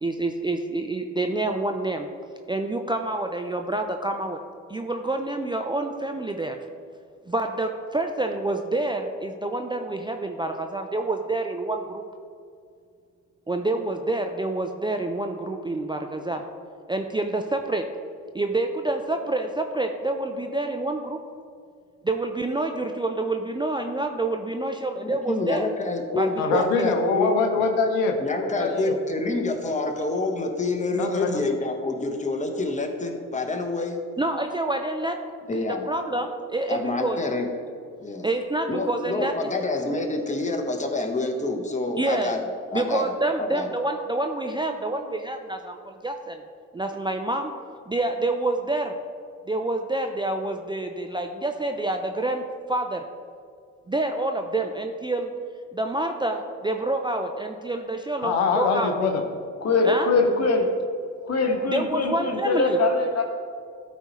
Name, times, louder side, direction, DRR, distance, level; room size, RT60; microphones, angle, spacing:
voice 1, 0.0-2.1 2.5-4.4 4.7-6.6 7.3-12.0 13.5-16.4 16.9-17.9 18.3-21.2 22.0-25.7 26.2-26.9 34.2-35.2 35.7-37.2 38.2-39.5 42.0-42.4 42.7-46.4 46.7-47.5 47.9-49.0 49.5-53.1 53.9-55.3 55.7-58.9 59.8-60.1 61.7-62.8, right 2 dB, 10° right, 5 dB, 0.5 m, -27 dB
voice 2, 25.0-27.3 28.2-34.0 35.5-35.9 36.7-37.7 38.0-38.3 38.7-42.4 42.7-43.7, left 2 dB, 20° left, 4 dB, 1.2 m, -27 dB
voice 3, 26.4-28.2 28.6-28.9 31.0-31.5 58.2-59.2, left 4 dB, 75° left, 4 dB, 0.8 m, -23 dB
voice 4, 59.6-60.7 61.2-63.2, left 3 dB, 40° left, 2 dB, 1.5 m, -22 dB
12.5 x 4.3 x 3.1 m, 2.3 s
hypercardioid pair, 50°, 39 cm